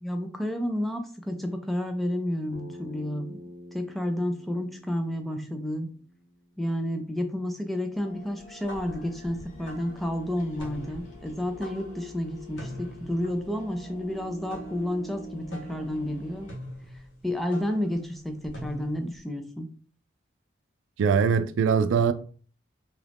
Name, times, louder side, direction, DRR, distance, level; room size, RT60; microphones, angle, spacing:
voice 1, 0.0-3.4 3.7-5.9 6.6-16.5 17.2-19.7, left 1 dB, ahead, 0.3 m, -31 dB
Bass guitar, 2.5-6.8, left 1 dB, 15° right, 0.7 m, -47 dB
sound 1, 7.9-16.5, equal, 40° left, 0.9 m, -45 dB
sound 2, 8.6-19.2, left 1 dB, 75° left, 1.0 m, -44 dB
voice 2, 21.0-22.1, right 6 dB, 85° right, 0.3 m, -22 dB
2.9 x 2.5 x 3.4 m
head